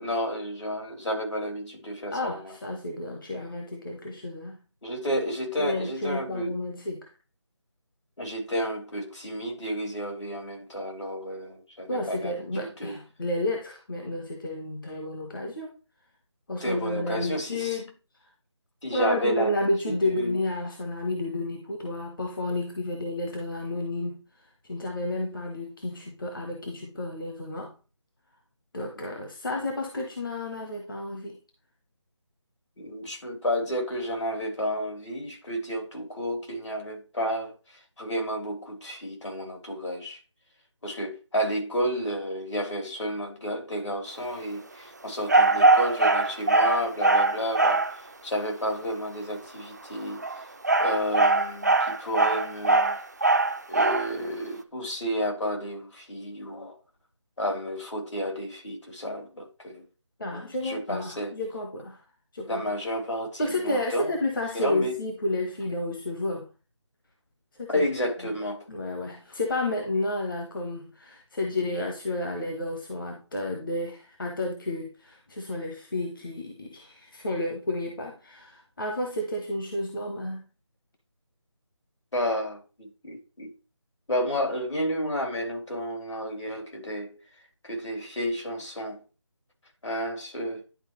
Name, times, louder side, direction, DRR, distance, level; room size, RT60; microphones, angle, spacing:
voice 1, 0.0-2.5 4.8-6.5 8.2-13.0 16.6-17.8 18.8-19.5 20.0-20.3 32.8-40.2 40.8-50.2 50.8-53.0 53.7-56.8 57.4-59.8 60.3-61.3 62.5-64.2 64.5-65.0 67.7-68.7 82.1-83.5 84.1-87.2 87.6-89.0 89.8-90.6, equal, 75° left, 3.3 m, -31 dB
voice 2, 2.1-4.6 5.6-7.1 11.9-15.7 16.5-17.9 18.9-27.7 28.7-31.4 60.2-62.0 62.3-62.6 63.4-66.5 67.6-67.8 68.7-80.4, left 2 dB, 45° left, 1.2 m, -31 dB
sound 1, 45.3-48.0 50.1-54.1, right 3 dB, 35° right, 0.4 m, -21 dB
11.0 x 4.5 x 3.1 m
figure-of-eight pair, 175°, 15 cm